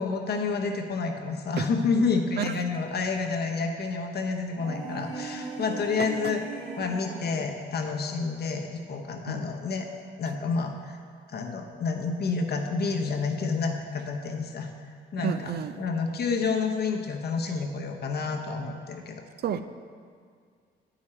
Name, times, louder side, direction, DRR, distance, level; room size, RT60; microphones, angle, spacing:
voice 1, 0.0-6.4 6.8-9.9 10.2-11.0 11.3-15.5 15.8-19.2, left 4 dB, 55° left, 3 dB, 0.9 m, -29 dB
sound 1, 4.5-7.4, right 3 dB, 85° right, 1.5 m, -38 dB
voice 2, 15.2-15.8 19.4-19.6, right 8 dB, 55° right, 11 dB, 0.4 m, -30 dB
9.5 x 5.0 x 4.4 m, 2.1 s
cardioid pair, 90°, 20 cm